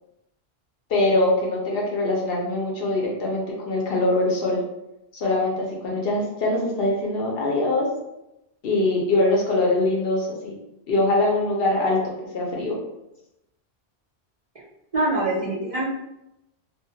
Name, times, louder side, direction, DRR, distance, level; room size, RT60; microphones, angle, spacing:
voice 1, 0.9-4.6 5.1-7.9 8.6-10.6 10.9-12.8, left 2 dB, 65° left, -2 dB, 0.8 m, -23 dB
voice 2, 14.9-15.8, right 2 dB, 50° right, -7 dB, 0.4 m, -24 dB
2.2 x 2.1 x 2.7 m, 0.89 s
omnidirectional pair, 1.1 m